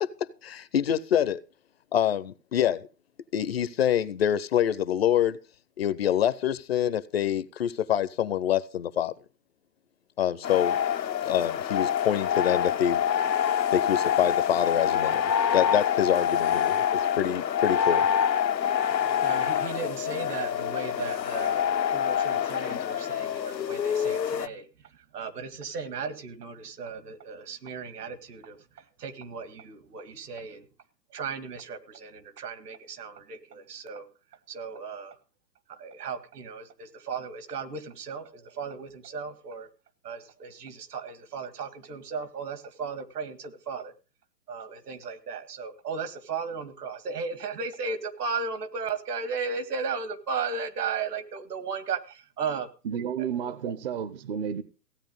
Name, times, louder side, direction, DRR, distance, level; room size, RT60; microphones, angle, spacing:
voice 1, 0.0-1.4 1.9-2.9 3.3-5.4 5.8-9.1 10.2-10.8 11.2-13.0 13.7-15.2 15.5-18.1, left 10 dB, 40° left, 0.6 m, -26 dB
sound 1, 10.4-24.5, left 9 dB, 90° left, 0.9 m, -26 dB
voice 2, 18.9-24.6 25.1-28.6 29.0-30.7 31.1-34.1 34.5-35.2 35.7-39.7 40.0-43.9 44.5-52.7 53.2-53.7, right 5 dB, 65° right, 2.2 m, -36 dB
voice 3, 52.8-54.6, right 8 dB, 35° right, 0.8 m, -31 dB
16.0 x 8.9 x 5.3 m
hypercardioid pair, 135°, 50 cm